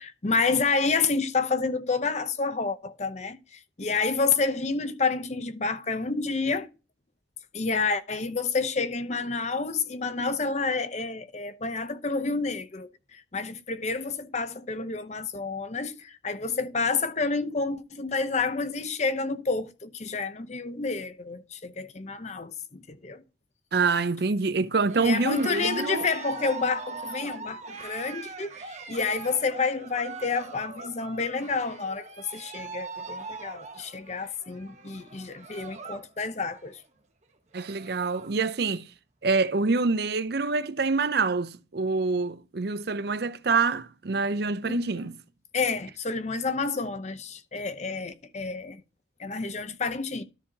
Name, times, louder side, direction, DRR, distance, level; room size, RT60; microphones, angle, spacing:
voice 1, 0.0-6.7 7.5-23.2 25.0-36.8 44.6-45.0 45.5-48.8 49.2-50.2, left 4 dB, 35° left, 0.7 m, -29 dB
voice 2, 23.7-26.1 37.5-38.9 39.2-45.2, right 4 dB, 55° right, 0.6 m, -26 dB
Cheering, 24.8-36.1 36.4-36.8 37.2-37.3 37.5-38.4, right 4 dB, 35° right, 1.1 m, -41 dB
13.0 x 5.5 x 2.8 m
head